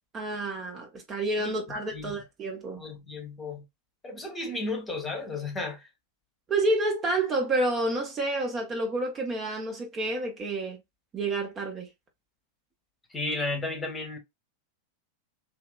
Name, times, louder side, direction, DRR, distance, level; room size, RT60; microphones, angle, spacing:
voice 1, 0.1-2.8 6.5-10.8 11.1-11.9, right 2 dB, 25° right, 1.0 m, -29 dB
voice 2, 2.8-3.6 4.0-5.8 13.1-14.2, left 2 dB, 15° left, 1.2 m, -33 dB
3.1 x 2.8 x 2.2 m
figure-of-eight pair, 90°, 0 cm